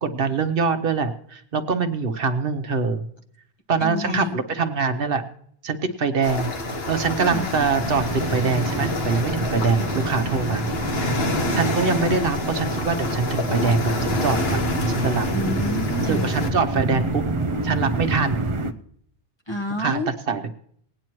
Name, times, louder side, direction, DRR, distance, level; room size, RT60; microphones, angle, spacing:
voice 1, 0.0-3.0 3.7-5.2 5.6-6.5 6.9-10.7 11.0-11.1 11.5-15.3 16.0-17.2 17.6-18.5 19.8-20.5, right 4 dB, 65° right, 8 dB, 1.0 m, -24 dB
voice 2, 3.8-4.4 7.2-7.5 15.3-16.3 19.5-20.1, equal, 25° left, 3 dB, 1.1 m, -29 dB
sound 1, 6.2-16.5, left 1 dB, 75° left, 1.5 m, -27 dB
sound 2, 7.8-18.7, right 2 dB, 35° right, 0.6 m, -28 dB
20.5 x 9.1 x 3.0 m, 0.65 s
omnidirectional pair, 1.1 m